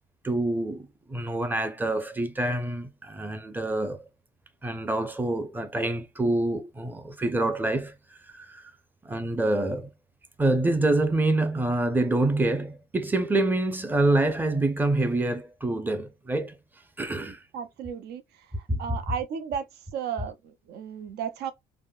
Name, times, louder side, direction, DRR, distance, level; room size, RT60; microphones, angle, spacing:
voice 1, 0.2-4.0 4.6-7.9 8.3-8.7 9.0-9.9 10.4-16.6 17.0-17.4 18.7-19.0, right 2 dB, 10° right, 0.6 m, -26 dB
voice 2, 17.5-18.2 18.8-19.7 19.9-21.5, right 7 dB, 75° right, 0.5 m, -33 dB
3.4 x 2.1 x 2.3 m
cardioid pair, 110°, 17 cm